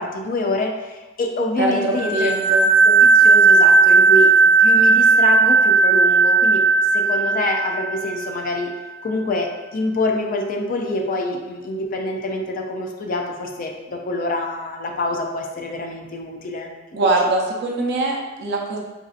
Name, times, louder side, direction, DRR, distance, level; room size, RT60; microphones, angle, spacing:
voice 1, 0.0-2.3 2.8-4.3 4.6-6.6 6.9-8.7 9.0-16.7, left 2 dB, 45° left, 2 dB, 0.4 m, -26 dB
voice 2, 1.6-2.7 16.9-18.8, right 2 dB, 60° right, -1 dB, 0.6 m, -22 dB
sound 1, 1.9-8.4, right 4 dB, 5° right, 0.5 m, -15 dB
4.0 x 2.6 x 2.4 m, 1.1 s
head